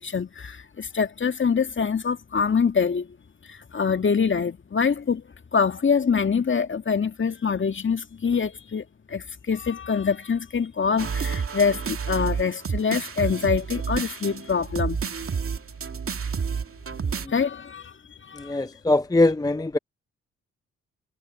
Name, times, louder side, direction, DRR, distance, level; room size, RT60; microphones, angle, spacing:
voice 1, 0.0-3.2 3.5-5.2 5.5-15.0 17.3-17.9 18.2-18.6, left 6 dB, 35° left, 2.0 m, -25 dB
sound 1, 11.0-17.3, right 6 dB, 45° right, 2.4 m, -30 dB
voice 2, 18.3-19.8, left 2 dB, 10° left, 0.9 m, -22 dB
hypercardioid pair, 40°, 32 cm